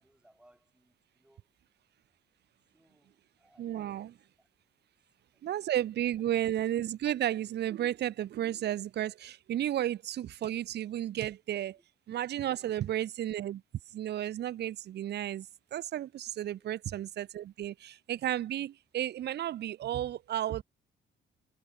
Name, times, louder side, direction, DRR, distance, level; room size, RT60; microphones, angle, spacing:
voice 1, 0.0-1.5 2.7-4.5 5.3-5.7 6.0-6.1 11.7-11.8 12.4-13.0 16.5-16.7, right 1 dB, 5° right, 6.2 m, -66 dB
voice 2, 3.6-4.1 5.4-11.8 12.1-13.6 13.9-20.6, right 12 dB, 60° right, 0.6 m, -33 dB
cardioid pair, 90°, 20 cm